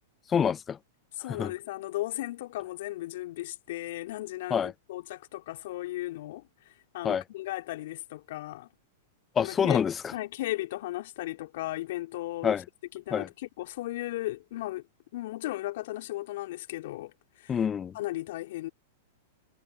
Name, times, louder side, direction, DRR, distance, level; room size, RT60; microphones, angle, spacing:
voice 1, 0.3-0.8 1.4-1.5 4.5-4.7 7.0-7.2 9.4-10.1 12.4-12.6 13.1-13.3 17.5-17.9, left 7 dB, 25° left, 1.0 m, -26 dB
voice 2, 1.1-6.5 6.9-8.7 9.4-9.8 10.1-12.6 12.9-14.8 15.1-17.6 17.9-18.7, left 16 dB, 60° left, 3.6 m, -36 dB
hypercardioid pair, 105°, 0 cm